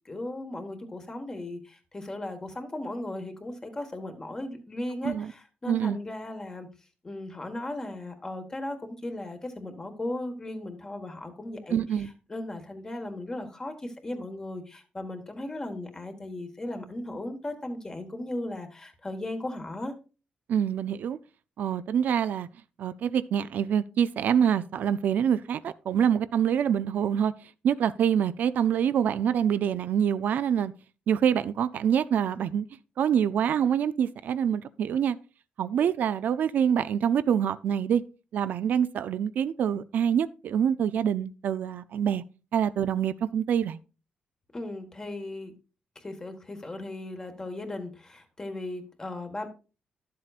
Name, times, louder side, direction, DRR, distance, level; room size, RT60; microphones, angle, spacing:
voice 1, 0.0-6.7 7.0-19.9 44.5-45.5 45.9-49.5, left 1 dB, 20° left, 1.5 m, -37 dB
voice 2, 5.7-6.0 11.7-12.1 20.5-21.2 21.6-22.5 22.8-27.3 27.6-30.7 31.1-32.7 33.0-35.2 35.6-38.0 38.3-42.2 42.5-43.8, right 8 dB, 70° right, 0.4 m, -25 dB
12.0 x 7.6 x 2.4 m
cardioid pair, 135°, 3 cm